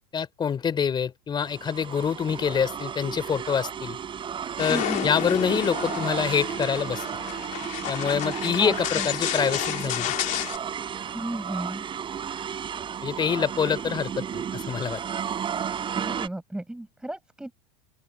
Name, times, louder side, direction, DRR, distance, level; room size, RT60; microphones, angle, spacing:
voice 1, 0.0-4.0 4.6-7.1 7.9-10.1 13.0-15.0, left 7 dB, 25° left, 3.4 m, -26 dB
sound 1, 1.4-16.3, right 8 dB, 25° right, 3.9 m, -33 dB
sound 2, 4.6-10.6, left 14 dB, 40° left, 3.4 m, -31 dB
voice 2, 4.7-5.1 8.3-9.1 11.1-11.8 16.0-17.5, right 1 dB, 5° right, 7.6 m, -34 dB
open air
hypercardioid pair, 115°, 19 cm